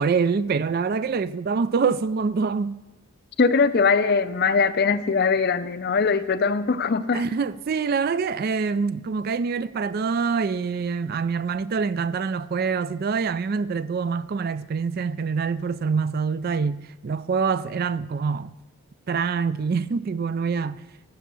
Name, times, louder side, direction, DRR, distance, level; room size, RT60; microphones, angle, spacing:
voice 1, 0.0-2.8 7.1-18.5 19.1-20.8, right 5 dB, 40° right, 0.3 m, -25 dB
voice 2, 3.4-7.2, left 5 dB, 45° left, 0.5 m, -21 dB
13.5 x 7.2 x 6.9 m
head